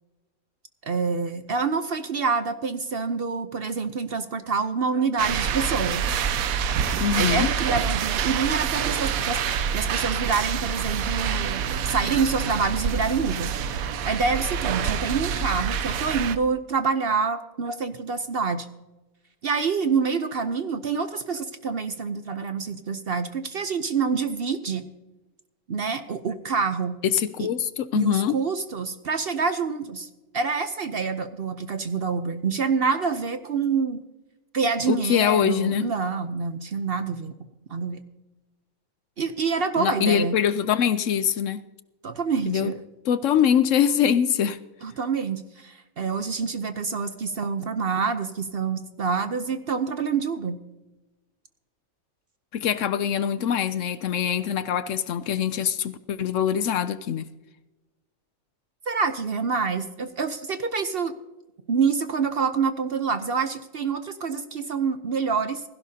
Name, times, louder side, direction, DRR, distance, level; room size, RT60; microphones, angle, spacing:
voice 1, 0.8-6.1 7.1-9.4 9.7-13.5 14.0-18.7 19.4-24.9 25.7-27.0 27.4-27.5 27.9-30.1 30.3-34.0 34.5-37.3 37.7-38.0 39.2-40.4 42.0-42.8 44.8-50.6 58.9-61.1 61.7-65.6, right 5 dB, 50° right, 0.8 m, -27 dB
sound 1, 5.2-16.4, right 7 dB, 75° right, 1.1 m, -27 dB
voice 2, 7.0-7.5 27.0-28.4 34.9-35.9 39.8-41.6 42.5-42.7 43.0-44.6 52.5-57.3, left 8 dB, 70° left, 0.9 m, -23 dB
16.5 x 15.5 x 2.8 m
omnidirectional pair, 1.5 m